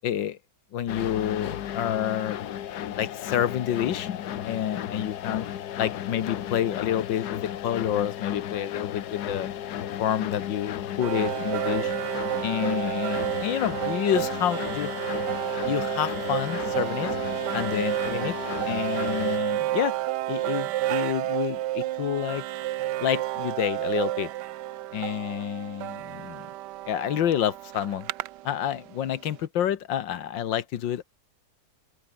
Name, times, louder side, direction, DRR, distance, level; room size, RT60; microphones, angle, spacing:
voice 1, 0.0-0.4 0.7-2.4 3.0-4.1 4.4-5.5 5.8-9.5 10.0-11.9 12.4-15.0 15.6-17.1 17.5-18.4 18.7-20.0 20.3-22.4 23.0-24.3 24.9-26.5 26.9-28.1 28.4-31.0, left 10 dB, 90° left, 1.9 m, -28 dB
sound 1, 0.9-19.4, left 11 dB, 65° left, 1.4 m, -34 dB
sound 2, 11.0-29.0, right 15 dB, 75° right, 1.2 m, -31 dB
open air
omnidirectional pair, 2.0 m